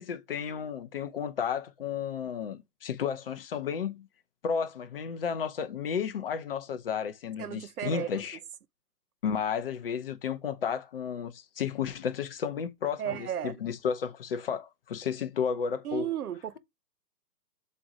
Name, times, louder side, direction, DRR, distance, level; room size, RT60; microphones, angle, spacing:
voice 1, 0.0-4.1 4.4-8.4 9.2-16.1, left 7 dB, 35° left, 1.0 m, -33 dB
voice 2, 7.4-8.1 13.0-13.5 15.8-16.6, right 10 dB, 65° right, 0.7 m, -34 dB
7.2 x 3.2 x 5.0 m
hypercardioid pair, 150°, 49 cm